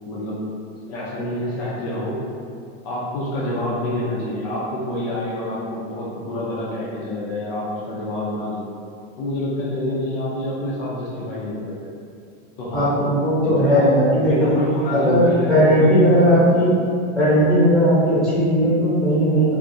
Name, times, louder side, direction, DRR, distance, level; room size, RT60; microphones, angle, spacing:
voice 1, 0.1-0.4 0.9-2.2 2.8-8.7 9.2-11.9 12.6-13.0 13.4-13.9 14.2-16.8, left 1 dB, 50° left, -7 dB, 0.5 m, -27 dB
voice 2, 12.7-14.5 14.9-16.8 17.1-19.5, equal, ahead, -12 dB, 0.9 m, -17 dB
2.3 x 2.0 x 2.6 m, 2.4 s
supercardioid pair, 140°, 32 cm